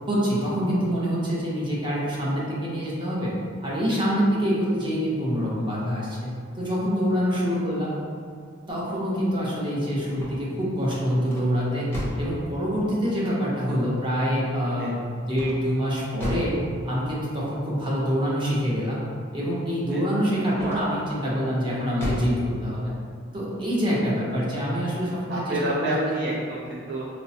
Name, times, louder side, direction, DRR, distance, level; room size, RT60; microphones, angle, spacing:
voice 1, 0.1-3.3 3.6-7.9 8.7-11.9 12.2-16.5 16.9-19.0 19.3-22.9 23.3-25.9, equal, 25° right, -7 dB, 0.8 m, -26 dB
sound 1, 10.2-12.4 15.3-16.6 20.5-21.1 21.6-22.4, equal, 10° left, 0.7 m, -34 dB
voice 2, 25.3-27.1, right 1 dB, 55° right, -5 dB, 0.4 m, -29 dB
4.5 x 2.0 x 2.7 m, 2.2 s
head